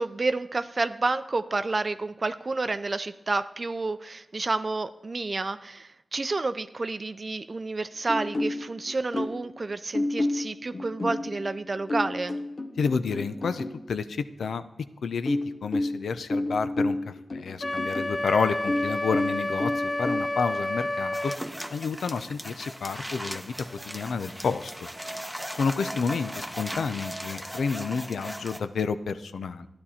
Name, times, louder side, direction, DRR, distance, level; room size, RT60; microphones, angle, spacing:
voice 1, 0.0-12.4, right 3 dB, 50° right, 11 dB, 0.4 m, -30 dB
sound 1, 8.1-9.5 9.9-13.8 15.3-18.2 18.7-20.2, left 2 dB, 60° left, 0.9 m, -30 dB
voice 2, 12.8-14.6 15.0-21.3 21.7-23.5 23.8-24.7 25.5-29.7, left 5 dB, 90° left, 12 dB, 0.5 m, -30 dB
Wind instrument woodwind instrument, 17.6-21.4, left 1 dB, 30° left, 0.4 m, -30 dB
sound 2, 21.1-28.6, equal, ahead, 1.0 m, -38 dB
12.5 x 10.5 x 4.2 m, 0.92 s
cardioid pair, 50°, 0 cm